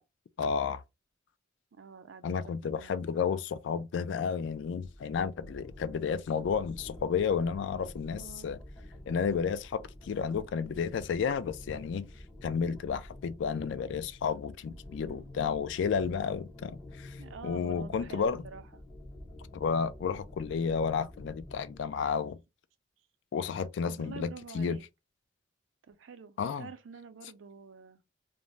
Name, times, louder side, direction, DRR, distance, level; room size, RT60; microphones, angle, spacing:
voice 1, 0.4-0.8 2.2-8.6 9.1-12.1 12.4-18.4 19.5-22.4 23.3-24.8 26.4-26.7, left 6 dB, 65° left, 0.3 m, -32 dB
voice 2, 1.7-3.0 8.1-8.5 14.7-15.5 17.2-18.8 23.9-24.8 25.8-28.0, right 5 dB, 75° right, 0.4 m, -48 dB
sound 1, 4.7-21.9, left 1 dB, 20° left, 0.6 m, -49 dB
2.5 x 2.0 x 3.1 m
head